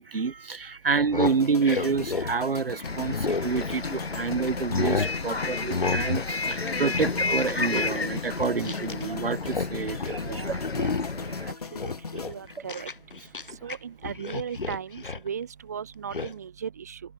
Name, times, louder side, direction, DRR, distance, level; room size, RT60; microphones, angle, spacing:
voice 1, 0.0-10.4 11.4-11.5, right 5 dB, 70° right, 0.9 m, -28 dB
sound 1, 0.9-4.1 4.5-5.1 5.7-6.3 6.6-9.0 9.3-9.7 10.0-10.2 10.6-11.3 11.6-13.8 14.0-15.3 16.1-16.3, left 4 dB, 60° left, 1.2 m, -31 dB
sound 2, 1.3-13.4 13.7-14.0, left 5 dB, 40° left, 1.7 m, -41 dB
Bus, 2.8-11.5, left 3 dB, 90° left, 0.9 m, -32 dB
voice 2, 10.2-11.0 11.7-11.8 12.1-12.9 13.6-17.0, right 7 dB, 15° right, 1.2 m, -37 dB
figure-of-eight pair, 155°, 30 cm